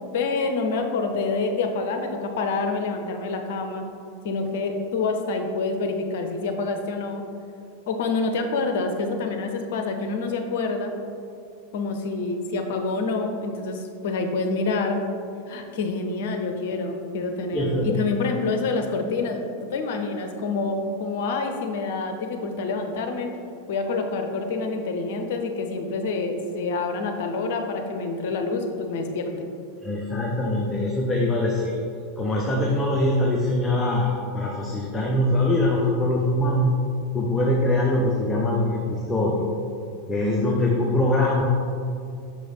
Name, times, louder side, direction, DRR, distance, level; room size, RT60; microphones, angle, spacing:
voice 1, 0.0-3.8 4.2-7.2 7.9-10.9 11.7-15.0 15.5-19.4 19.7-23.3 23.7-29.5, left 3 dB, 55° left, 5 dB, 0.7 m, -27 dB
voice 2, 17.5-18.0 29.8-31.8 32.2-36.8 37.1-39.5 40.1-41.4, left 1 dB, 15° left, -3 dB, 0.8 m, -23 dB
6.4 x 5.0 x 4.0 m, 2.5 s
figure-of-eight pair, 90°, 0 cm